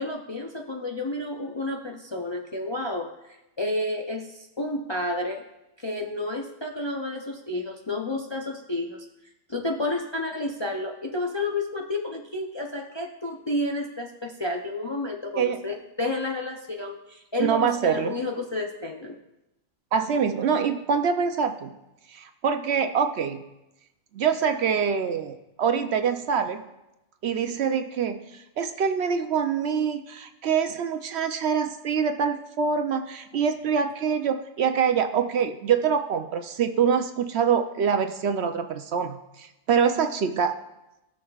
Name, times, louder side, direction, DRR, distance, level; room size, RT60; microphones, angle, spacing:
voice 1, 0.0-5.4 5.8-9.1 9.5-19.2, left 2 dB, 30° left, 1 dB, 0.5 m, -31 dB
voice 2, 17.4-18.1 19.9-21.7 22.1-23.4 24.1-26.6 27.2-40.5, right 6 dB, 65° right, 7 dB, 0.8 m, -25 dB
18.5 x 6.4 x 2.3 m, 0.94 s
omnidirectional pair, 1.3 m